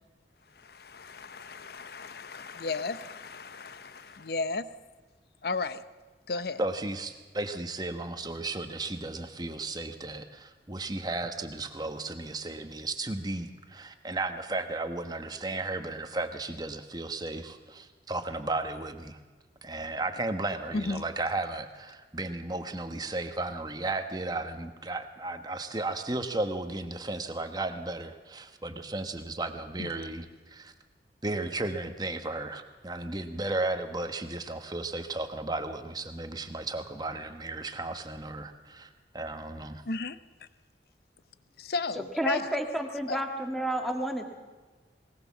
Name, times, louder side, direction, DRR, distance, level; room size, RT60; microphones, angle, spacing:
voice 1, 1.0-4.7 5.4-5.8 6.3-6.6 20.7-21.0 29.8-29.9 39.9-40.2 41.6-42.5 43.1-43.2, left 3 dB, 55° left, 14 dB, 0.7 m, -34 dB
voice 2, 6.6-19.2 19.6-30.7 31.2-39.8, right 2 dB, 20° right, 7 dB, 1.2 m, -34 dB
voice 3, 42.2-44.3, right 1 dB, ahead, 3 dB, 1.9 m, -30 dB
20.0 x 19.5 x 7.2 m, 1.3 s
head